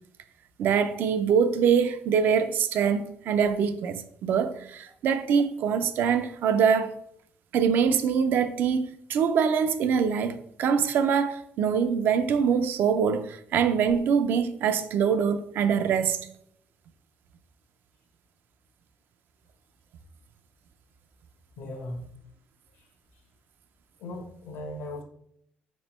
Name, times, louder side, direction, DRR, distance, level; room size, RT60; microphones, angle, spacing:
voice 1, 0.6-6.9 7.5-16.2, right 7 dB, 65° right, 0.3 m, -24 dB
voice 2, 21.6-22.0 24.0-25.0, left 1 dB, 85° left, 0.8 m, -37 dB
3.6 x 3.1 x 3.0 m
cardioid pair, 125°, 4 cm